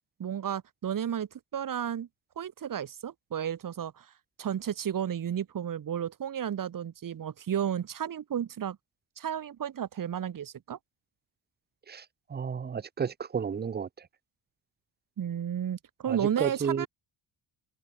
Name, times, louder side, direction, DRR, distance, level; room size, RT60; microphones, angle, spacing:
voice 1, 0.2-2.1 2.4-4.1 4.4-8.8 9.2-10.8 15.2-16.9, right 9 dB, 45° right, 2.1 m, -33 dB
voice 2, 12.3-14.1 16.1-16.9, right 6 dB, 20° right, 0.7 m, -32 dB
cardioid pair, 140°, 47 cm